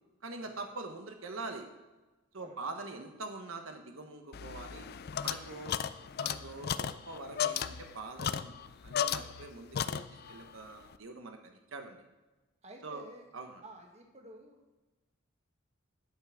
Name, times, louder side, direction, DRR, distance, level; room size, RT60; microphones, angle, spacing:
voice 1, 0.2-1.7 2.3-4.8 5.2-5.8 6.2-8.6 8.8-10.0 10.3-12.0 12.8-13.0 13.3-13.6, right 3 dB, 80° right, 5 dB, 1.1 m, -44 dB
sound 1, 4.3-9.5 9.7-10.4, left 8 dB, 50° left, 0.4 m, -35 dB
voice 2, 12.6-13.2 13.6-14.7, right 1 dB, 30° right, 2 dB, 1.5 m, -52 dB
10.5 x 5.8 x 6.3 m, 1.1 s
head